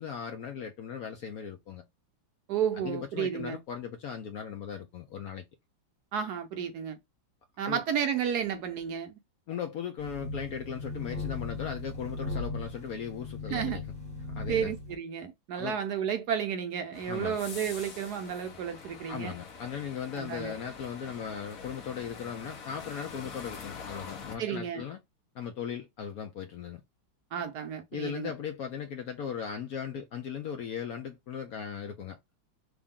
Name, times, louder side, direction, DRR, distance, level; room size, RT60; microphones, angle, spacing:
voice 1, 0.0-1.8 2.8-5.4 7.6-7.8 9.5-13.8 14.3-14.7 15.6-15.8 17.1-17.4 19.1-25.0 25.3-26.8 27.9-32.2, left 7 dB, 70° left, 0.8 m, -38 dB
voice 2, 2.5-3.6 6.1-7.0 7.6-9.2 13.5-13.8 14.5-19.3 20.1-20.5 24.4-24.8 27.3-28.3, right 8 dB, 70° right, 1.0 m, -32 dB
sound 1, 10.0-14.9, left 3 dB, 5° left, 1.2 m, -38 dB
sound 2, 16.9-24.4, left 5 dB, 55° left, 1.1 m, -45 dB
3.5 x 2.5 x 3.6 m
omnidirectional pair, 2.1 m